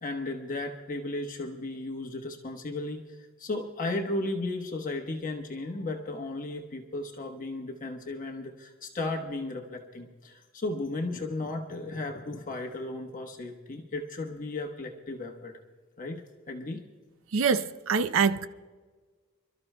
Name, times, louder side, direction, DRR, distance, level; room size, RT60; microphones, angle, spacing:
voice 1, 0.0-15.5 16.0-16.2 16.5-16.8, left 2 dB, 40° left, 1.1 m, -35 dB
voice 2, 17.3-18.5, right 5 dB, 65° right, 0.6 m, -25 dB
29.5 x 13.0 x 2.2 m
head